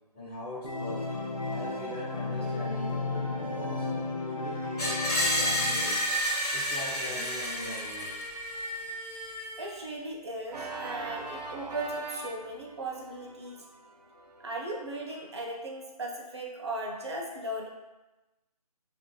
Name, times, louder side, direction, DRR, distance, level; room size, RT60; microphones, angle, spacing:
voice 1, 0.1-1.1 1.4-3.9 4.2-6.1 6.5-8.2, left 1 dB, 15° left, -13 dB, 1.3 m, -41 dB
Organ, 0.6-6.4, left 3 dB, 55° left, 0.6 m, -34 dB
Screech, 4.8-9.7, equal, 70° left, 1.2 m, -31 dB
voice 2, 9.6-13.6 14.4-17.7, right 1 dB, 45° right, -1 dB, 0.5 m, -37 dB
Organ 2, 10.5-15.3, right 3 dB, 90° right, 0.7 m, -42 dB
4.1 x 2.5 x 2.2 m, 1.1 s
figure-of-eight pair, 170°, 20 cm